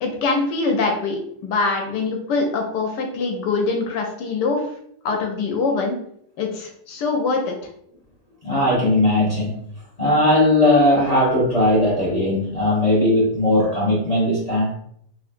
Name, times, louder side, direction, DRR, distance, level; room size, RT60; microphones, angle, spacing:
voice 1, 0.0-4.6 5.0-6.0 6.4-7.6, left 3 dB, 70° left, 2 dB, 1.1 m, -23 dB
voice 2, 8.4-9.6 10.0-14.7, left 1 dB, 90° left, -8 dB, 0.3 m, -18 dB
3.8 x 3.0 x 2.5 m, 0.69 s
omnidirectional pair, 2.3 m